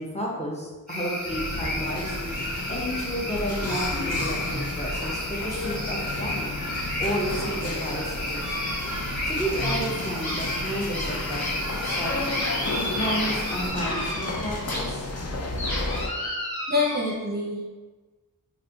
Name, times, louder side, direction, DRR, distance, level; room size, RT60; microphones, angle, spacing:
voice 1, 0.0-6.6 7.0-8.8 9.2-12.2 12.7-15.1, equal, 20° left, -4 dB, 0.7 m, -32 dB
sound 1, 0.9-13.7, left 1 dB, ahead, 1.1 m, -33 dB
sound 2, 1.3-16.1, left 2 dB, 45° left, 0.4 m, -32 dB
sound 3, 8.4-9.3 9.6-14.8 15.1-17.1, equal, 85° left, 0.8 m, -33 dB
voice 2, 16.7-17.7, left 3 dB, 25° right, -4 dB, 0.6 m, -26 dB
4.0 x 2.1 x 2.7 m, 1.3 s
wide cardioid pair, 50°, 36 cm